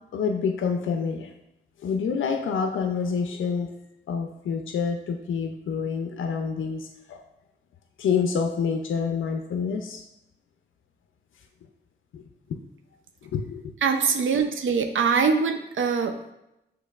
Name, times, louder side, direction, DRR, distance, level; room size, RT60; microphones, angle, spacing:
voice 1, 0.1-1.3 1.8-3.7 4.1-7.2 8.0-10.0 12.1-12.2 13.2-13.7, left 6 dB, 85° left, 4 dB, 0.4 m, -27 dB
voice 2, 13.8-16.3, right 5 dB, 75° right, 5 dB, 0.5 m, -23 dB
6.4 x 2.9 x 2.4 m, 0.86 s
cardioid pair, 50°, 20 cm